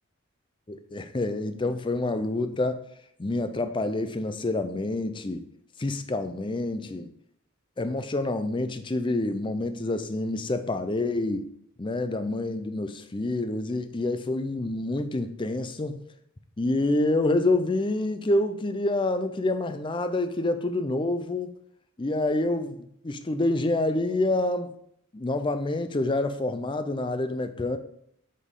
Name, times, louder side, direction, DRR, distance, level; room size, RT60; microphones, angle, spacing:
voice 1, 0.7-2.8 3.2-5.5 5.8-7.1 7.8-11.5 11.8-16.0 16.6-21.6 22.0-24.7 25.1-27.8, left 2 dB, 20° left, 9 dB, 0.4 m, -27 dB
8.1 x 5.2 x 3.7 m, 0.71 s
head